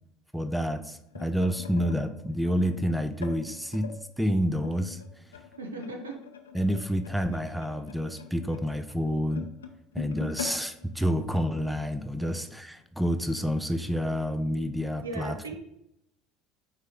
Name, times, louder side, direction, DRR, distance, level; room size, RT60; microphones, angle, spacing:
voice 1, 0.3-5.0 6.5-9.5 9.9-15.6, equal, ahead, 9 dB, 0.5 m, -29 dB
sound 1, 0.9-4.0 4.6-11.9 12.3-12.5 12.8-13.1 13.8-13.9, left 7 dB, 85° left, 0.6 m, -44 dB
voice 2, 5.6-6.2 12.2-12.3 15.0-15.6, right 2 dB, 85° right, 4 dB, 0.9 m, -37 dB
8.9 x 3.3 x 3.7 m, 0.78 s
hypercardioid pair, 70°, 0 cm